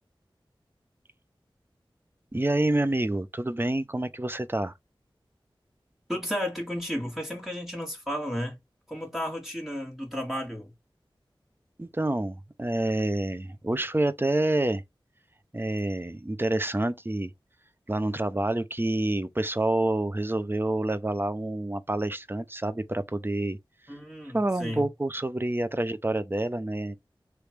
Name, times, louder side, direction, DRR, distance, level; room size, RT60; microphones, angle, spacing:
voice 1, 2.3-4.7 11.8-14.8 15.5-17.3 17.9-23.6 24.3-26.9, right 1 dB, 25° right, 0.6 m, -28 dB
voice 2, 6.1-8.6 8.9-10.7 23.9-24.9, equal, 5° right, 2.0 m, -33 dB
3.3 x 3.1 x 4.5 m
wide cardioid pair, 45°, 9 cm